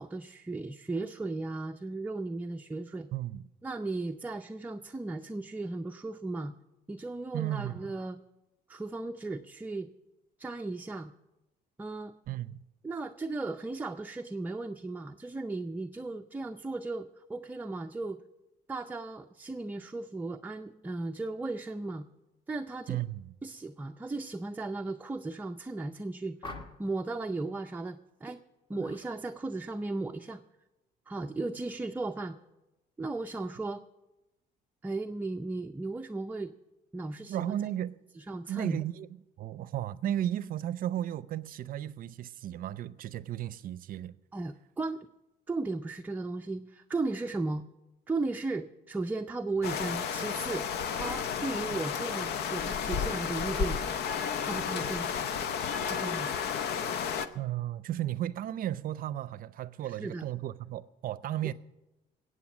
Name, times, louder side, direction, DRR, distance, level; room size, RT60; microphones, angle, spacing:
voice 1, 0.0-3.1 3.6-6.5 6.9-8.2 8.7-9.9 10.4-11.1 11.8-12.1 12.8-18.2 18.7-22.1 22.5-23.0 23.4-28.4 28.7-30.4 31.1-32.4 33.0-33.8 34.8-36.5 36.9-37.6 38.2-38.8 44.3-45.1 45.5-47.7 48.1-53.8 54.4-55.1 55.8-56.3 59.8-60.3, right 3 dB, 10° right, 0.5 m, -36 dB
voice 2, 3.1-3.4 7.3-7.8 12.3-12.5 22.9-23.3 37.3-38.0 38.5-39.1 39.4-44.2 57.3-61.5, right 12 dB, 55° right, 0.5 m, -34 dB
sound 1, 26.4-27.0 28.8-29.1 29.4-29.8, left 2 dB, 30° left, 1.3 m, -45 dB
sound 2, 49.6-57.3, left 7 dB, 75° left, 0.7 m, -32 dB
20.5 x 8.4 x 6.1 m
cardioid pair, 110°, 17 cm